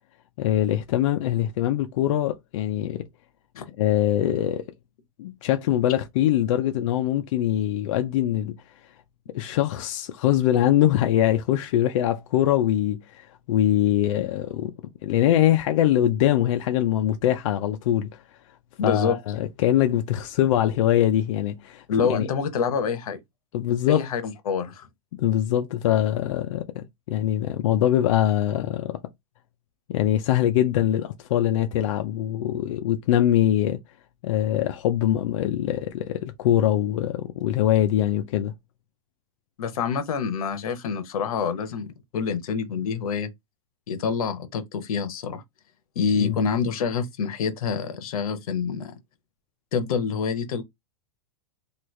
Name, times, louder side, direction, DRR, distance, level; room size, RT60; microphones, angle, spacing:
voice 1, 0.4-3.1 3.8-4.7 5.2-8.5 9.3-14.7 15.0-18.2 18.8-22.3 23.5-24.0 25.2-29.0 29.9-33.8 34.2-38.5 46.2-46.4, left 12 dB, 65° left, 0.4 m, -23 dB
voice 2, 18.8-19.2 21.9-23.2 23.9-24.9 39.6-41.9 42.1-43.3 43.9-45.4 46.0-48.9 49.7-50.6, left 6 dB, 90° left, 0.8 m, -26 dB
3.1 x 2.3 x 3.1 m
supercardioid pair, 165°, 18 cm